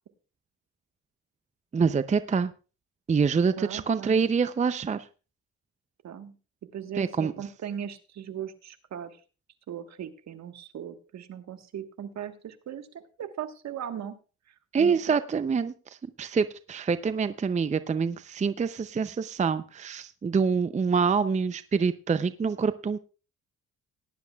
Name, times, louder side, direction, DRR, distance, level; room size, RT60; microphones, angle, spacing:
voice 1, 1.7-2.5 3.1-5.1 7.0-7.3 14.7-23.0, right 5 dB, 25° right, 12 dB, 0.5 m, -26 dB
voice 2, 3.6-4.3 6.0-6.3 6.7-9.2 9.7-14.1 14.8-15.0, right 9 dB, 60° right, 8 dB, 1.4 m, -38 dB
18.5 x 10.5 x 2.3 m, 0.34 s
cardioid pair, 90°, 30 cm